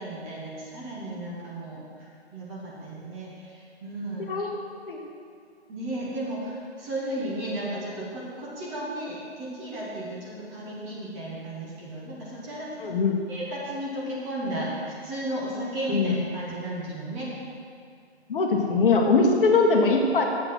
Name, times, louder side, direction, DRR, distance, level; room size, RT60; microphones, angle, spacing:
voice 1, 0.0-1.8 2.3-4.2 5.7-13.0 13.3-14.7 15.0-17.3, right 1 dB, 15° right, -6 dB, 1.1 m, -34 dB
voice 2, 4.2-4.5 4.8-5.0 12.8-13.2 15.9-16.1 18.3-20.2, left 4 dB, 50° left, 1 dB, 1.2 m, -21 dB
7.8 x 6.0 x 5.9 m, 2.2 s
hypercardioid pair, 155°, 33 cm